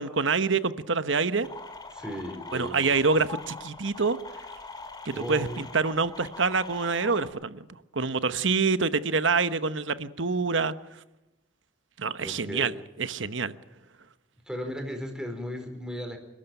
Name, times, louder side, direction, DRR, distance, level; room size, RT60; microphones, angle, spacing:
voice 1, 0.0-1.5 2.5-4.2 5.0-7.6 7.9-10.7 12.0-12.7 13.0-13.5, right 4 dB, 70° right, 12 dB, 1.1 m, -26 dB
sound 1, 1.4-7.3, left 3 dB, 20° left, 2.2 m, -43 dB
voice 2, 1.9-3.0 5.1-5.6 12.2-12.7 14.5-16.2, equal, 5° right, 4 dB, 4.5 m, -36 dB
28.0 x 13.0 x 9.1 m, 0.99 s
head